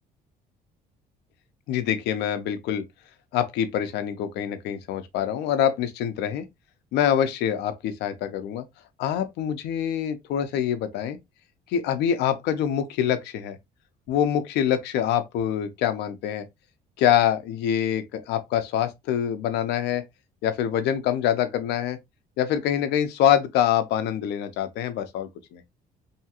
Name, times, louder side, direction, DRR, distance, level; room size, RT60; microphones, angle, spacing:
voice 1, 1.7-2.8 3.3-6.4 6.9-8.6 9.0-11.2 11.7-13.6 14.1-16.5 17.0-20.0 20.4-22.0 22.4-25.6, left 10 dB, 85° left, 0.6 m, -25 dB
2.8 x 2.3 x 2.8 m
cardioid pair, 110°, 17 cm